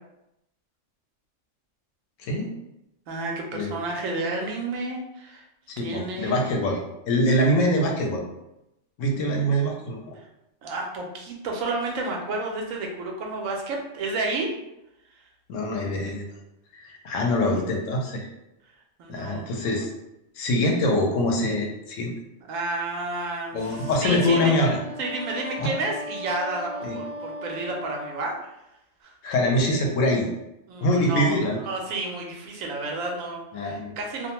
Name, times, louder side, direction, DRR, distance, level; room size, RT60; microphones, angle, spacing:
voice 1, 3.1-5.4 5.8-6.4 10.2-10.3 10.6-14.5 19.0-19.5 22.5-24.5 25.0-28.5 29.0-29.1 30.7-34.3, right 2 dB, 85° right, 1 dB, 1.0 m, -31 dB
voice 2, 5.7-6.8 7.1-8.2 9.0-10.1 15.5-16.2 16.7-18.3 19.1-19.9 20.4-22.1 23.5-24.8 25.6-25.7 26.8-27.0 29.2-30.3 30.8-31.6 33.5-34.0, left 1 dB, 75° left, 0 dB, 0.9 m, -24 dB
Wind instrument woodwind instrument, 23.7-28.3, left 1 dB, 35° right, 0.7 m, -37 dB
2.5 x 2.1 x 2.9 m, 0.88 s
omnidirectional pair, 1.4 m